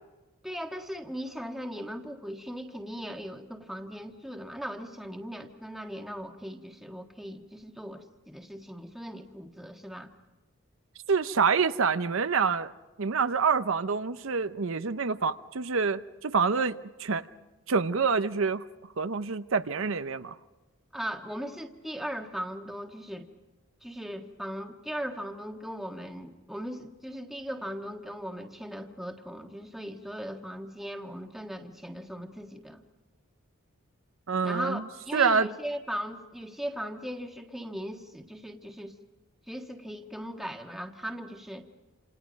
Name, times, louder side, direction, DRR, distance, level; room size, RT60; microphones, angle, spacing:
voice 1, 0.4-10.1 20.9-23.3 23.8-32.8 34.4-38.9 39.5-41.6, equal, ahead, 1.5 m, -38 dB
voice 2, 11.1-12.7 13.0-17.2 17.7-18.6 19.0-20.3 34.3-34.8 35.1-35.5, right 5 dB, 70° right, 0.7 m, -26 dB
28.5 x 27.0 x 5.2 m
head